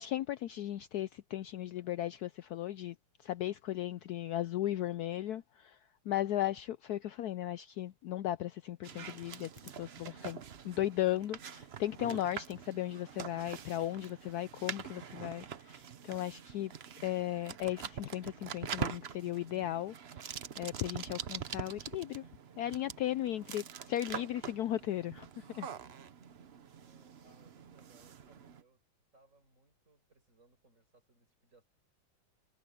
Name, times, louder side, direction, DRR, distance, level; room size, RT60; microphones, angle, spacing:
voice 1, 0.0-3.0 3.2-5.8 6.1-16.7 17.0-22.3 22.6-25.7, left 13 dB, 85° left, 0.8 m, -36 dB
sound 1, 8.8-28.6, right 8 dB, 55° right, 0.7 m, -45 dB
voice 2, 26.7-28.8 29.1-31.6, right 2 dB, 35° right, 6.4 m, -67 dB
omnidirectional pair, 2.2 m